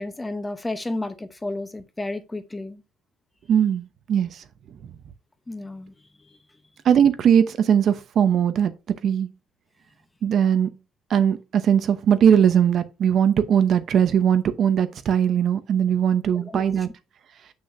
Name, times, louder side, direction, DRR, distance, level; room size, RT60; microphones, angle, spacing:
voice 1, 0.0-2.8 5.5-5.9 16.3-16.6, left 2 dB, 10° left, 0.9 m, -32 dB
voice 2, 3.5-4.3 6.8-8.7 9.0-9.3 10.2-10.7 11.1-16.9, right 8 dB, 40° right, 0.8 m, -20 dB
7.8 x 6.4 x 2.6 m
cardioid pair, 160°, 0 cm